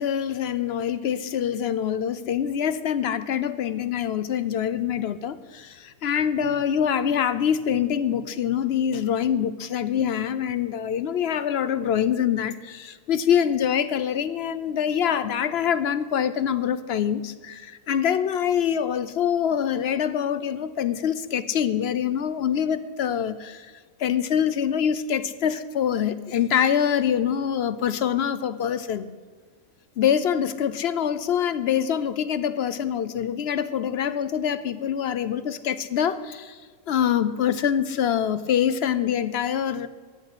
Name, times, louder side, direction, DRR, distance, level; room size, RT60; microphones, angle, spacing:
voice 1, 0.0-23.7 24.0-29.1 30.0-36.6 36.9-39.9, left 8 dB, 60° left, 14 dB, 0.7 m, -25 dB
14.5 x 6.5 x 9.7 m, 1.5 s
omnidirectional pair, 1.4 m